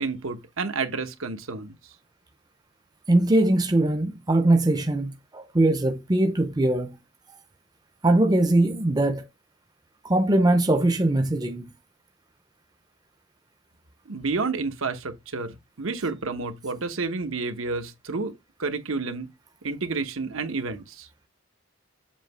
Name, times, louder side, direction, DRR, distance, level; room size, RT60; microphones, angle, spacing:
voice 1, 0.0-1.7 14.1-18.3 18.6-19.3 19.6-21.1, right 4 dB, 80° right, 1.0 m, -30 dB
voice 2, 3.1-6.9 8.0-9.3 10.0-11.6, right 1 dB, 20° right, 0.5 m, -21 dB
7.4 x 2.8 x 5.4 m
head